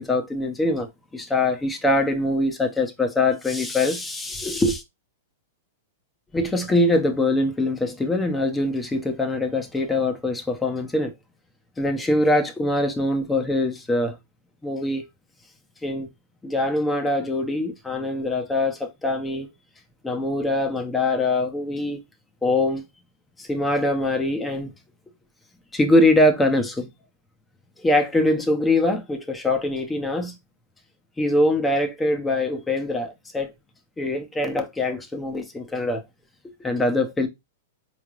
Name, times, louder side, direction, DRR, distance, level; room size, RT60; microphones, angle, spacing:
voice 1, 0.0-4.8 6.3-11.1 11.8-14.2 14.6-15.0 15.8-16.1 16.4-19.5 20.0-22.0 22.4-22.8 23.4-24.7 25.7-26.9 27.8-30.3 31.2-33.5 34.0-36.0 36.6-37.3, left 2 dB, 10° left, 0.9 m, -23 dB
4.2 x 3.3 x 2.5 m
hypercardioid pair, 135°, 0 cm